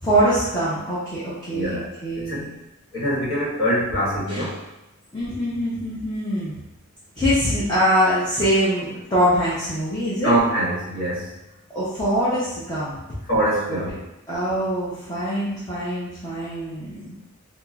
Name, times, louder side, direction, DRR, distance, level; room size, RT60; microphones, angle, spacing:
voice 1, 0.0-2.5 4.3-4.6 5.1-6.5 7.2-10.3 11.7-13.0 13.3-13.9 14.3-17.1, equal, 20° left, -11 dB, 0.6 m, -23 dB
voice 2, 1.5-1.8 2.3-2.4 2.9-4.5 10.2-11.2 13.3-13.9, right 1 dB, 60° left, -7 dB, 1.3 m, -23 dB
4.2 x 2.0 x 2.3 m, 0.94 s
head